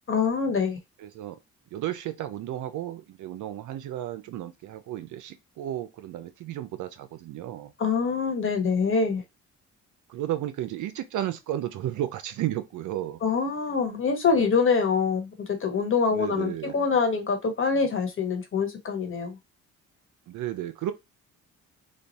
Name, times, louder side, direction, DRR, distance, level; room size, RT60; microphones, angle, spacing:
voice 1, 0.1-0.8 7.8-9.2 13.2-19.4, left 5 dB, 45° left, 1.3 m, -25 dB
voice 2, 1.0-1.4 1.7-7.7 10.1-13.2 16.1-16.8 20.3-20.9, right 12 dB, 80° right, 0.6 m, -33 dB
3.2 x 2.3 x 4.0 m
cardioid pair, 90°, 30 cm